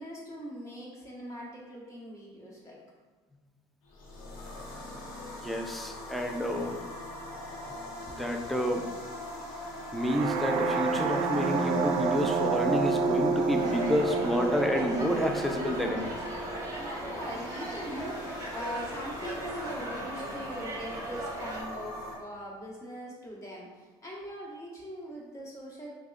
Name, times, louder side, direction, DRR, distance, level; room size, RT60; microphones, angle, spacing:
voice 1, 0.0-2.8 16.8-25.9, equal, 25° left, -4 dB, 1.3 m, -41 dB
sound 1, 3.9-22.2, left 1 dB, 80° left, 0.9 m, -42 dB
voice 2, 5.4-6.8 8.1-8.9 9.9-16.2, equal, ahead, 3 dB, 0.5 m, -29 dB
sound 2, 10.0-17.9, right 4 dB, 60° right, 0.4 m, -30 dB
sound 3, 13.6-21.6, right 2 dB, 30° right, 1.0 m, -39 dB
5.9 x 2.2 x 2.5 m, 1.3 s
supercardioid pair, 80°, 11 cm